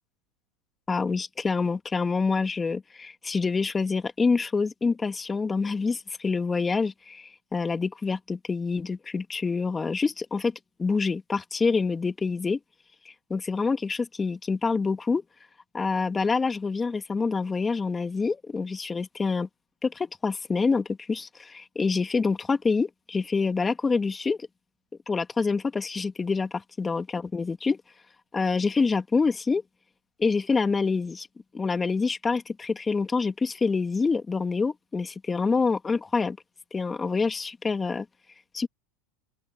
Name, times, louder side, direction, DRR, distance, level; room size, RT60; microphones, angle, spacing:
voice 1, 0.9-12.6 13.3-15.2 15.7-19.5 19.8-24.5 25.1-27.8 28.3-29.6 30.2-31.3 31.5-36.4 36.7-38.1 38.5-38.7, left 4 dB, 20° left, 2.3 m, -26 dB
open air
hypercardioid pair, 100°, 0 cm